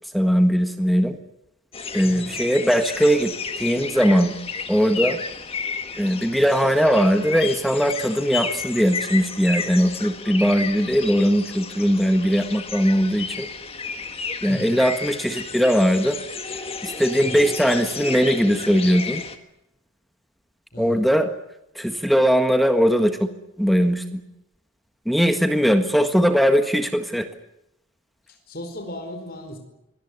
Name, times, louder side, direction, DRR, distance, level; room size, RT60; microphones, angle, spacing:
voice 1, 0.1-1.2 1.9-4.3 4.7-5.2 6.0-13.5 14.4-16.2 16.8-19.2 20.8-21.3 21.7-23.3 23.6-24.2 25.0-27.3, equal, ahead, 7 dB, 1.6 m, -20 dB
sound 1, 1.7-19.4, left 5 dB, 25° left, 1.7 m, -32 dB
voice 2, 14.5-14.8 17.2-17.5 20.7-21.1 28.3-29.6, left 1 dB, 40° left, 5 dB, 4.9 m, -36 dB
24.0 x 18.5 x 9.7 m, 0.84 s
head